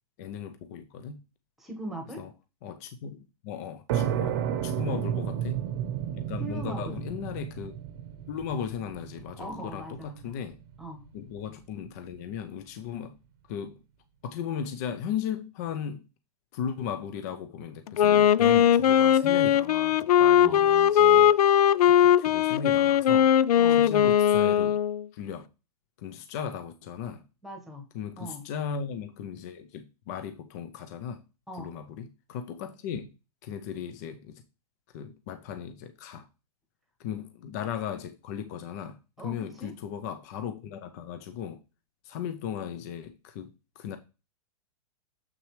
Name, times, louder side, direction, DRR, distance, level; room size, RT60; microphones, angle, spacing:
voice 1, 0.2-1.2 2.2-2.3 2.6-5.6 6.1-7.8 8.3-10.6 11.1-13.2 13.5-13.8 14.2-16.0 16.5-23.3 23.8-24.8 25.1-25.5 26.0-27.2 27.9-31.2 31.6-33.1 33.4-34.4 34.9-36.3 37.0-39.0 39.2-41.6 42.0-44.0, left 8 dB, 30° left, 0.5 m, -37 dB
voice 2, 1.6-2.2 4.9-5.3 6.4-7.0 9.4-10.4 10.8-11.0 20.4-20.7 23.6-23.8 27.4-27.9 28.2-28.4 31.5-31.7 39.2-39.7, right 1 dB, ahead, 1.3 m, -40 dB
sound 1, 3.9-11.3, right 9 dB, 35° right, 0.9 m, -32 dB
Wind instrument woodwind instrument, 17.9-25.0, left 10 dB, 90° left, 0.4 m, -20 dB
7.3 x 6.2 x 3.2 m
hypercardioid pair, 170°, 19 cm